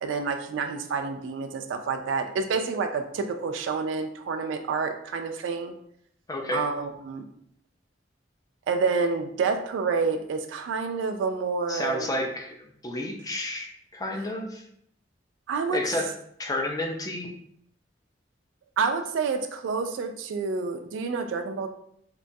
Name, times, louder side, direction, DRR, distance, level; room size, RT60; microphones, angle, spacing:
voice 1, 0.0-5.7 6.5-7.2 8.7-12.1 15.5-15.8 18.8-21.7, right 5 dB, 90° right, 7 dB, 0.3 m, -28 dB
voice 2, 6.3-6.6 11.7-12.6 12.8-14.6 15.7-16.1 16.4-17.3, left 1 dB, 20° left, 2 dB, 0.4 m, -30 dB
2.9 x 2.2 x 2.6 m, 0.70 s
head